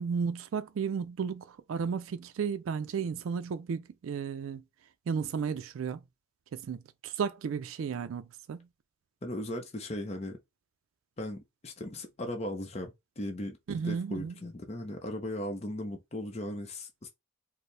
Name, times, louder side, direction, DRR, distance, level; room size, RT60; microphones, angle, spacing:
voice 1, 0.0-4.6 5.1-6.0 6.5-8.7 13.7-14.3, right 6 dB, 80° right, 0.3 m, -34 dB
voice 2, 9.2-10.4 11.2-17.1, left 1 dB, 30° left, 0.6 m, -37 dB
4.2 x 2.0 x 3.2 m
head